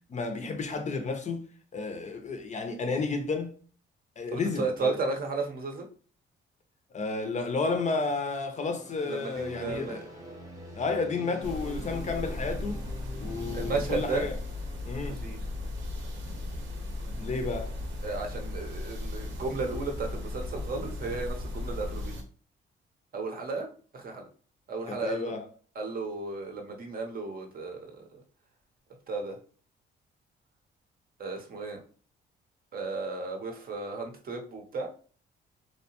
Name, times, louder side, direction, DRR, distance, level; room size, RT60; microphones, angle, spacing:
voice 1, 0.1-1.4 1.7-3.5 4.2-4.9 6.9-10.1 10.8-12.8 13.2-14.4 14.9-15.2 17.2-17.7 24.9-25.4, left 4 dB, 35° left, 0.5 m, -32 dB
voice 2, 4.3-5.8 9.1-10.0 13.5-14.3 15.1-15.4 18.0-22.1 23.1-23.7 23.9-24.2 24.7-25.4 25.8-28.0 29.1-29.4 31.2-31.8 32.7-34.9, right 3 dB, 50° right, 0.7 m, -34 dB
sound 1, 8.4-14.1, equal, 15° right, 0.8 m, -45 dB
sound 2, 11.4-22.2, left 2 dB, 75° right, 0.8 m, -36 dB
2.7 x 2.1 x 2.8 m
cardioid pair, 90°, 20 cm